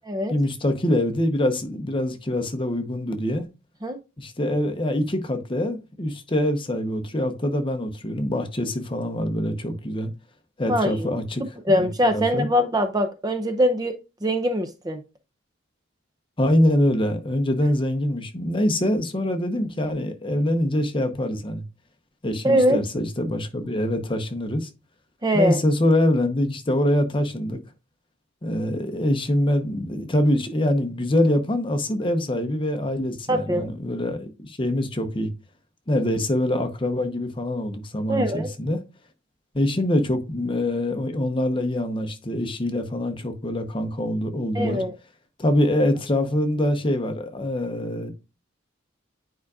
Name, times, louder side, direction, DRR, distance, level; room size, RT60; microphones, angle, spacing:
voice 1, 0.3-3.4 4.2-10.1 10.6-11.9 12.1-12.5 16.4-21.6 22.2-24.7 25.3-27.6 28.4-35.3 35.9-38.8 39.5-44.8 45.4-48.1, left 1 dB, 25° left, 0.8 m, -24 dB
voice 2, 10.7-11.1 11.6-13.9 14.2-15.0 22.4-22.8 25.2-25.6 33.3-33.7 38.1-38.5 44.5-44.9, equal, 20° right, 0.5 m, -22 dB
9.3 x 4.8 x 2.4 m
head